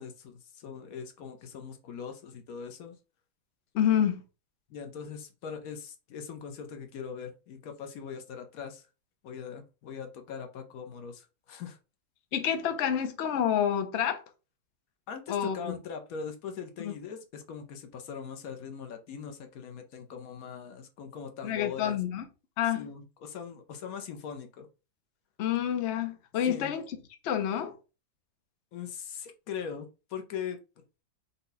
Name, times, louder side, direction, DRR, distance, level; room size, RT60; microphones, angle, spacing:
voice 1, 0.0-3.0 4.7-8.9 9.2-11.8 15.1-22.0 22.7-24.7 26.4-26.7 28.7-30.6, left 7 dB, 65° left, 0.9 m, -41 dB
voice 2, 3.7-4.2 12.3-14.2 15.3-15.7 16.8-16.9 21.4-22.2 22.6-22.9 25.4-26.8 27.2-27.7, left 9 dB, 85° left, 0.6 m, -28 dB
5.4 x 2.2 x 3.9 m
omnidirectional pair, 2.1 m